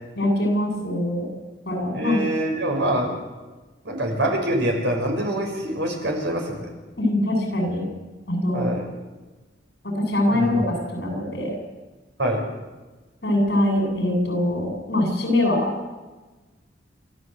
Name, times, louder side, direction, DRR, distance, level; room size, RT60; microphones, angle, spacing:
voice 1, 0.2-1.3 1.7-2.2 7.0-7.9 8.3-8.7 9.8-11.6 13.2-15.9, left 1 dB, 60° left, 2 dB, 7.9 m, -23 dB
voice 2, 1.9-3.2 3.8-6.7 8.5-8.8 10.3-10.5 12.2-12.4, right 1 dB, 70° right, 2 dB, 6.0 m, -25 dB
27.5 x 14.5 x 8.2 m, 1.2 s
head